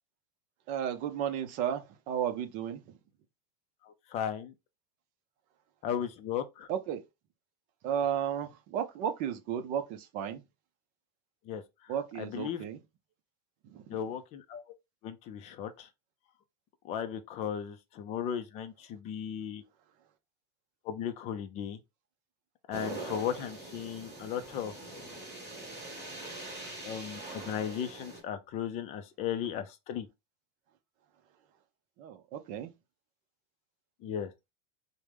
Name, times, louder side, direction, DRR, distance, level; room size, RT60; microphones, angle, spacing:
voice 1, 0.7-3.0 6.7-7.0 7.8-10.4 11.9-12.8 13.6-13.8 32.0-32.7, right 9 dB, 40° right, 0.6 m, -34 dB
voice 2, 3.9-4.5 5.8-6.7 11.5-12.6 13.9-14.6 15.0-15.9 16.8-19.6 20.8-21.8 22.7-25.2 26.8-30.1 34.0-34.3, left 9 dB, 35° left, 0.4 m, -36 dB
sound 1, 22.7-28.2, right 2 dB, 15° right, 2.4 m, -43 dB
4.8 x 2.1 x 3.3 m
supercardioid pair, 155°, 20 cm